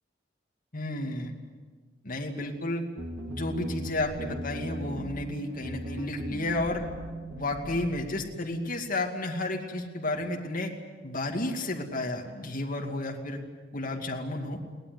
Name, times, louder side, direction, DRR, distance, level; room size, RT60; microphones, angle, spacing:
voice 1, 0.7-1.3 2.0-2.8 3.3-6.8 7.4-10.7 11.0-13.4 13.7-14.6, left 2 dB, 45° left, 1 dB, 2.5 m, -32 dB
sound 1, 3.0-8.3, right 1 dB, 80° right, 2.9 m, -39 dB
23.0 x 18.0 x 9.7 m, 1.4 s
head